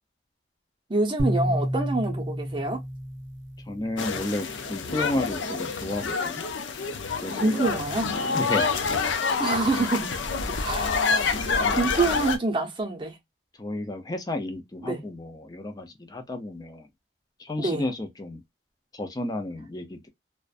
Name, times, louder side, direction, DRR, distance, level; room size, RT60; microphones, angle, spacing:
voice 1, 0.9-2.8 5.5-5.6 7.3-8.2 9.4-10.1 10.6-10.9 11.7-13.2 14.8-15.0 17.6-17.9, right 2 dB, 25° right, 0.7 m, -26 dB
sound 1, 1.2-4.5, equal, 80° right, 0.6 m, -30 dB
voice 2, 3.7-6.4 7.2-7.7 8.2-8.7 11.6-11.8 12.1-12.2 13.6-16.9 17.4-18.4 18.9-20.1, left 1 dB, 20° left, 0.5 m, -32 dB
sound 2, 4.0-12.4, left 4 dB, 90° left, 0.5 m, -27 dB
2.4 x 2.1 x 2.4 m
head